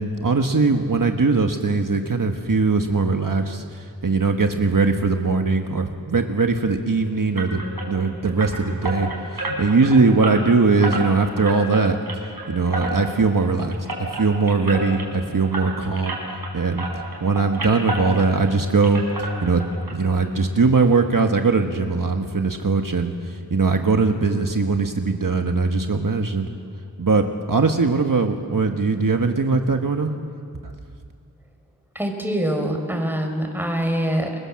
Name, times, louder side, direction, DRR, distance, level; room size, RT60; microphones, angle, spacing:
voice 1, 0.0-12.2 12.5-16.2 16.5-16.9 17.2-19.6 19.9-26.5 27.0-30.1 30.6-30.7, right 4 dB, 60° right, 4 dB, 1.5 m, -20 dB
sound 1, 7.4-16.5 16.8-18.6 18.8-19.9 20.2-20.3 20.8-20.9 21.2-21.3, right 2 dB, 80° right, 6.4 m, -31 dB
voice 2, 31.9-34.3, equal, 5° right, 3 dB, 5.1 m, -24 dB
29.0 x 22.0 x 7.6 m, 2.2 s
wide cardioid pair, 55°, 37 cm